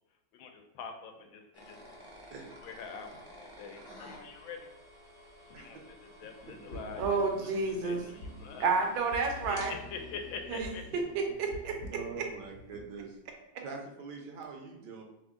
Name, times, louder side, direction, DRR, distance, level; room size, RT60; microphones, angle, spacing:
voice 1, 0.3-1.8 2.2-4.7 5.5-5.8 6.2-7.5 7.8-8.7 9.5-9.6 9.9-11.0, left 5 dB, 85° left, 5 dB, 1.4 m, -45 dB
sound 1, 1.5-12.3, equal, 30° right, 0.5 m, -53 dB
sound 2, 6.4-12.9, left 1 dB, 60° left, 0.8 m, -47 dB
voice 2, 7.0-8.0 8.6-9.7 10.5-11.7, right 4 dB, 90° right, 2 dB, 1.5 m, -30 dB
voice 3, 11.9-13.2 13.6-15.0, right 5 dB, 70° right, 2 dB, 1.2 m, -43 dB
3.7 x 3.5 x 3.6 m, 0.89 s
omnidirectional pair, 2.2 m